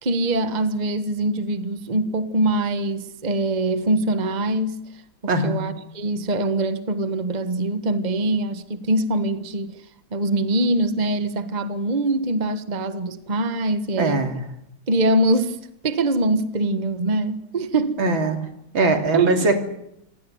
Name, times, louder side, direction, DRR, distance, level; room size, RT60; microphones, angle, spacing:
voice 1, 0.0-4.8 5.2-9.8 10.1-14.3 14.9-15.6 15.8-18.0 19.0-19.5, right 2 dB, 25° right, 1.4 m, -23 dB
voice 2, 5.3-5.6 14.0-14.4 18.0-18.4 18.7-19.6, right 2 dB, 80° right, 3.8 m, -21 dB
27.0 x 17.5 x 9.5 m
omnidirectional pair, 2.1 m